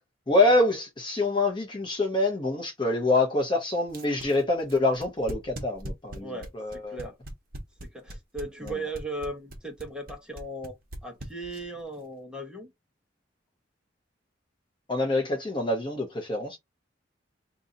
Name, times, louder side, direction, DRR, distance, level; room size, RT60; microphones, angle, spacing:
voice 1, 0.3-7.0 14.9-16.6, left 2 dB, 25° left, 0.7 m, -25 dB
sound 1, 3.9-11.8, right 1 dB, 50° right, 1.0 m, -40 dB
voice 2, 6.2-7.2 7.9-10.7 11.0-12.7, right 2 dB, 5° right, 1.1 m, -37 dB
2.7 x 2.7 x 3.7 m
head